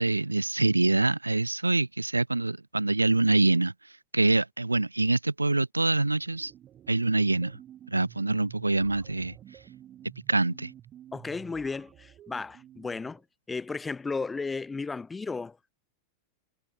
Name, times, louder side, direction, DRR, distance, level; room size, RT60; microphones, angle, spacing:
voice 1, 0.0-3.7 4.1-6.5 6.9-7.6 7.9-9.4 10.3-10.7, right 2 dB, 85° right, 0.5 m, -25 dB
sound 1, 6.2-13.2, right 11 dB, 30° right, 1.2 m, -51 dB
voice 2, 11.1-13.2 13.5-15.7, left 4 dB, 10° left, 0.8 m, -34 dB
figure-of-eight pair, 90°, 0 cm